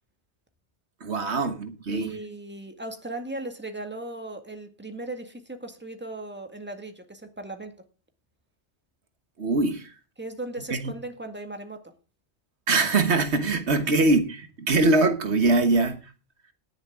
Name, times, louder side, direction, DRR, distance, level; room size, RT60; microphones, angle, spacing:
voice 1, 1.0-2.2 9.4-9.9 10.7-10.9 12.7-16.1, right 3 dB, 75° right, 1.6 m, -23 dB
voice 2, 1.9-7.8 10.2-11.9, right 2 dB, 10° right, 1.9 m, -37 dB
18.5 x 7.2 x 3.6 m
omnidirectional pair, 1.1 m